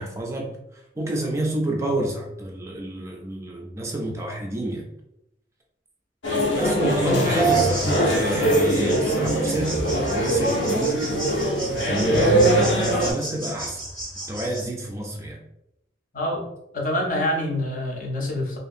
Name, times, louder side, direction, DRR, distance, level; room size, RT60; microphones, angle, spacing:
voice 1, 0.0-4.9 6.5-11.1 11.9-13.8 14.3-15.4, right 1 dB, 15° right, 0 dB, 0.3 m, -28 dB
sound 1, 6.2-13.1, right 1 dB, 85° left, 0.7 m, -22 dB
voice 2, 7.0-7.3 16.1-16.5 16.7-18.6, left 1 dB, 50° left, -1 dB, 0.6 m, -26 dB
sound 2, 7.4-14.7, right 3 dB, 5° left, 0.7 m, -31 dB
2.6 x 2.4 x 2.5 m, 0.83 s
head